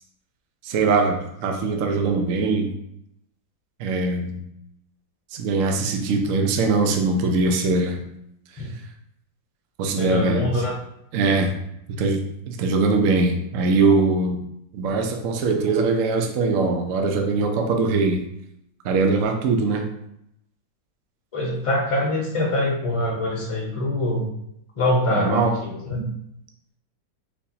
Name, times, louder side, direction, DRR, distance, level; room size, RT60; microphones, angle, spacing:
voice 1, 0.6-2.7 3.8-4.4 5.3-8.0 9.8-10.5 11.1-11.5 11.9-12.2 12.5-14.4 14.7-18.2 18.8-19.9 25.1-25.6, right 3 dB, 80° right, 4 dB, 0.7 m, -21 dB
voice 2, 10.0-10.8 21.3-24.3 24.8-26.0, left 1 dB, 30° left, -2 dB, 0.7 m, -24 dB
4.5 x 3.5 x 2.7 m, 0.77 s
omnidirectional pair, 2.1 m